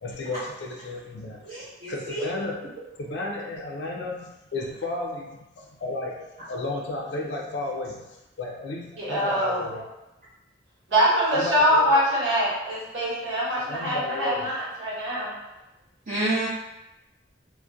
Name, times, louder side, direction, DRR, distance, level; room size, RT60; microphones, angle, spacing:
voice 1, 0.0-1.6 1.9-2.6 3.0-9.9 11.3-11.9 13.7-14.5, left 2 dB, 60° left, -1 dB, 0.4 m, -33 dB
voice 2, 1.4-2.2 16.1-16.5, right 2 dB, 50° right, -12 dB, 0.6 m, -29 dB
voice 3, 9.0-9.6 10.9-15.3, equal, 70° right, -8 dB, 1.0 m, -23 dB
2.3 x 2.1 x 2.6 m, 0.99 s
head